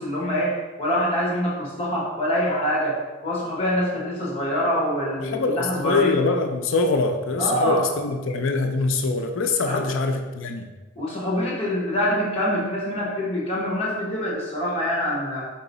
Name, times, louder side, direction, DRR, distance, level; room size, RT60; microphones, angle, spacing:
voice 1, 0.0-6.2 7.4-7.9 9.7-9.9 10.9-15.4, equal, 25° left, -4 dB, 1.2 m, -25 dB
voice 2, 5.2-10.7, left 3 dB, 65° left, 6 dB, 0.4 m, -23 dB
4.5 x 2.9 x 3.9 m, 1.2 s
head